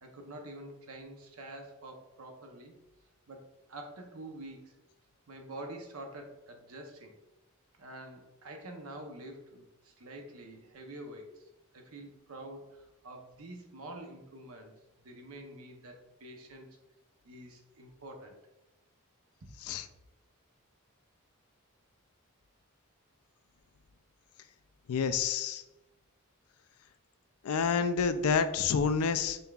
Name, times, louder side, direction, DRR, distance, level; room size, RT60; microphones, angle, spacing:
voice 1, 0.0-2.7 3.3-4.8 5.3-7.1 7.8-11.5 11.7-14.7 15.0-16.7 17.2-18.4, right 1 dB, 75° right, 3 dB, 0.8 m, -47 dB
voice 2, 24.9-25.6 27.4-29.4, left 6 dB, 75° left, 11 dB, 0.4 m, -28 dB
5.4 x 3.3 x 2.3 m, 0.96 s
head